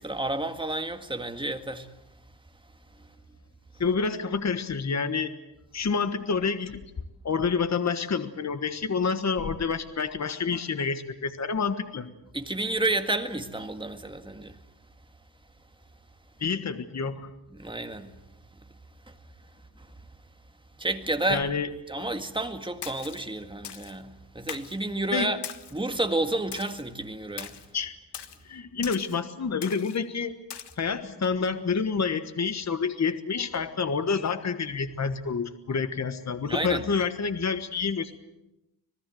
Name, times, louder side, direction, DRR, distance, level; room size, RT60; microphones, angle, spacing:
voice 1, 0.0-1.9 12.3-14.6 17.5-18.1 20.8-21.5 21.9-25.4 25.7-27.5 36.5-36.9, right 2 dB, 10° right, 1.8 m, -30 dB
voice 2, 3.8-5.3 5.7-6.8 7.2-12.1 16.4-17.3 21.3-21.7 22.0-22.1 25.1-25.3 27.7-27.9 28.4-30.4 30.8-38.2, left 5 dB, 40° left, 1.4 m, -28 dB
Splash splatter, 22.8-23.2 23.6-24.0 24.5-24.8 25.4-25.8 26.5-26.8 27.4-27.7 28.1-28.4 28.8-29.2 29.6-30.0 30.5-30.7, left 8 dB, 70° left, 1.6 m, -40 dB
26.5 x 19.0 x 7.8 m
wide cardioid pair, 125°, 42 cm